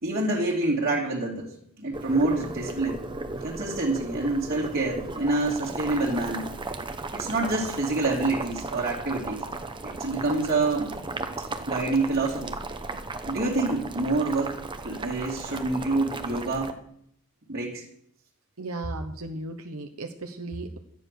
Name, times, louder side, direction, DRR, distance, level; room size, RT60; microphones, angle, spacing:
voice 1, 0.0-3.1 3.4-6.5 7.1-9.5 9.8-10.9 11.7-12.5 13.3-16.8 17.5-17.8, right 2 dB, 45° right, -5 dB, 2.4 m, -27 dB
Boiling, 1.9-16.7, right 2 dB, 20° right, 0.9 m, -35 dB
voice 2, 18.6-20.8, right 2 dB, 75° right, 5 dB, 1.1 m, -36 dB
12.5 x 9.9 x 6.6 m, 0.69 s
head